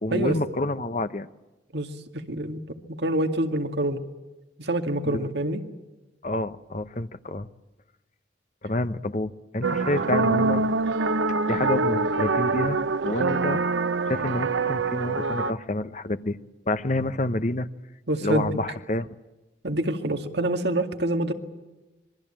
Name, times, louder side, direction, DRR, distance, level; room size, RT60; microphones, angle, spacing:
voice 1, 0.0-1.3 5.1-5.3 6.2-7.5 8.6-10.6 11.5-12.8 13.0-13.6 14.1-16.4 16.7-17.7 18.2-19.1, left 2 dB, 40° left, 12 dB, 0.9 m, -28 dB
voice 2, 1.7-4.0 4.6-5.6 18.1-18.5 19.6-21.3, right 1 dB, 60° right, 6 dB, 2.2 m, -26 dB
sound 1, 9.6-15.5, right 3 dB, 80° right, 0.9 m, -25 dB
26.5 x 23.0 x 8.9 m, 1.1 s
head